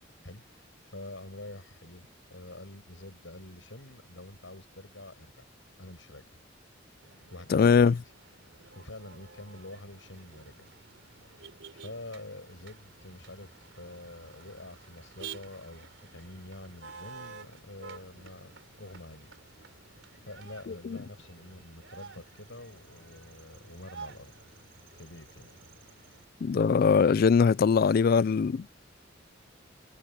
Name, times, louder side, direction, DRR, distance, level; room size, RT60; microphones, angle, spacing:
voice 1, 0.2-5.5 5.8-6.4 7.3-8.0 8.7-10.7 11.7-19.3 20.2-24.3 24.9-25.5 25.9-26.0, left 1 dB, 80° left, 6.6 m, -47 dB
Motor vehicle (road), 7.0-26.2, right 5 dB, 80° right, 4.0 m, -51 dB
voice 2, 7.5-7.9 26.4-28.7, left 5 dB, 50° left, 0.3 m, -21 dB
head